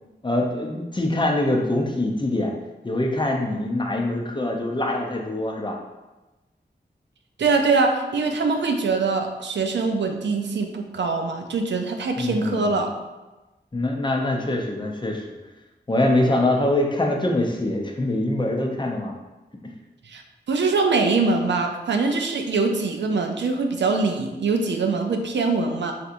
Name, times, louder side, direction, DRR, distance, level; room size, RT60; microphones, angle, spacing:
voice 1, 0.2-2.5 2.8-5.8 12.2-12.8 13.7-15.2 15.9-19.1, left 1 dB, 25° left, 0 dB, 0.5 m, -24 dB
voice 2, 7.4-12.9 20.1-20.2 20.5-25.9, right 4 dB, 80° right, 4 dB, 0.4 m, -23 dB
3.4 x 2.8 x 2.5 m, 1.1 s
cardioid pair, 45°, 18 cm